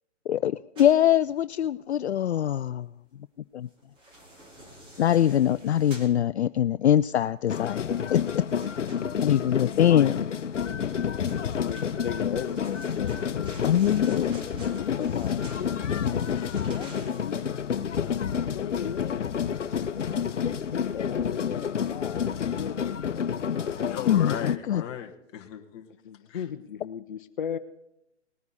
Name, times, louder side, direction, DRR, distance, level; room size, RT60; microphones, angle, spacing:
voice 1, 0.3-2.9 3.5-3.7 5.0-8.4 9.2-10.2 13.6-14.3 15.0-15.2 20.4-20.6 24.1-24.8, left 10 dB, 65° left, 14 dB, 0.5 m, -23 dB
sound 1, 0.7-1.0 3.8-6.2 8.6-9.5 11.1-17.5, right 1 dB, 15° right, 2.1 m, -47 dB
sound 2, 7.5-24.6, left 7 dB, 80° left, 0.9 m, -29 dB
voice 2, 10.2-10.5 23.8-25.9 26.3-26.4, left 9 dB, 25° left, 4 dB, 1.3 m, -37 dB
voice 3, 11.6-13.5 14.1-14.3 14.6-17.6 17.9-19.2 20.7-23.9 26.0-27.6, left 8 dB, 45° left, 12 dB, 0.9 m, -38 dB
19.5 x 9.5 x 4.1 m, 0.83 s
hypercardioid pair, 150°, 36 cm